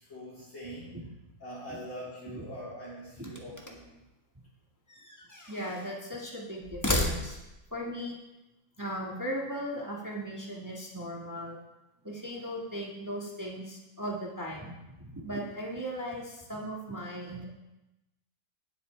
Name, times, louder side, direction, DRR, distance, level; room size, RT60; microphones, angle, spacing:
voice 1, 0.1-1.0 1.4-3.8, equal, 45° left, -9 dB, 3.8 m, -43 dB
sound 1, 3.2-4.0 4.9-6.0 6.6-7.7, left 1 dB, 10° left, 1.0 m, -33 dB
voice 2, 5.5-7.4 7.7-8.2 8.8-11.6 12.0-17.4, equal, 10° right, -3 dB, 1.3 m, -37 dB
17.0 x 8.2 x 3.3 m, 0.99 s
omnidirectional pair, 1.9 m